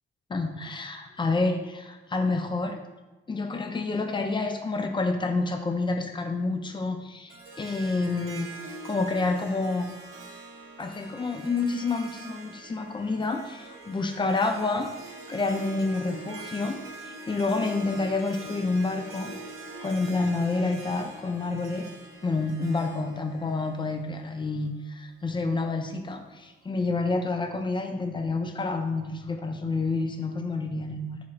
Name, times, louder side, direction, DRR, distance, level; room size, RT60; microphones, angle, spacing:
voice 1, 0.3-2.8 3.3-8.5 8.8-9.9 10.8-19.3 19.8-21.9 22.2-31.2, left 3 dB, 25° left, 5 dB, 0.4 m, -28 dB
Harp, 7.3-24.6, right 2 dB, 90° right, 0.6 m, -44 dB
3.2 x 2.3 x 3.7 m, 1.1 s
cardioid pair, 80°, 21 cm